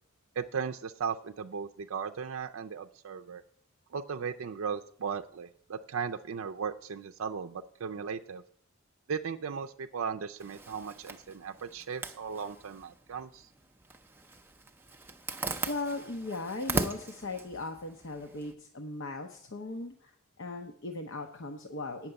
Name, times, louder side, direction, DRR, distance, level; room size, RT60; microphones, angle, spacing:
voice 1, 0.4-3.4 3.9-8.4 9.1-13.5, right 6 dB, 75° right, 6 dB, 0.4 m, -37 dB
Zipper (clothing), 10.4-18.5, right 2 dB, 10° right, 0.5 m, -39 dB
voice 2, 15.7-20.1 20.4-22.1, left 2 dB, 60° left, 4 dB, 0.8 m, -38 dB
8.7 x 6.0 x 7.9 m, 0.64 s
head